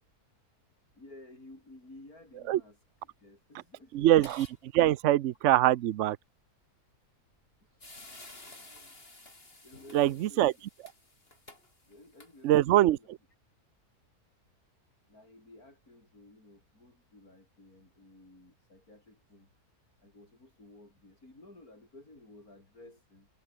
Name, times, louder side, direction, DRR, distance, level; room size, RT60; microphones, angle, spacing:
voice 1, 0.8-4.1 7.6-8.0 8.3-9.0 9.6-10.6 11.9-13.1 15.1-19.5 20.0-23.3, left 2 dB, 65° left, 8.0 m, -55 dB
voice 2, 3.9-6.2 9.9-10.5 12.4-13.0, right 13 dB, 65° right, 0.8 m, -23 dB
sound 1, 4.1-4.6 4.9-5.0 7.3-7.4 7.8-12.7, left 2 dB, 35° left, 4.8 m, -52 dB
omnidirectional pair, 1.6 m